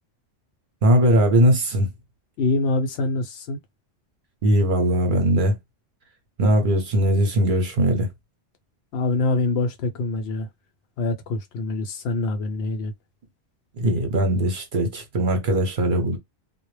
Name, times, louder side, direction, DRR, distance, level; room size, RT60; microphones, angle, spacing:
voice 1, 0.8-1.9 4.4-5.5 6.4-8.1 13.8-16.2, right 1 dB, 45° right, 0.8 m, -20 dB
voice 2, 2.4-3.6 8.9-10.5 11.0-12.9, left 3 dB, 65° left, 0.7 m, -25 dB
2.2 x 2.0 x 3.1 m
omnidirectional pair, 1.3 m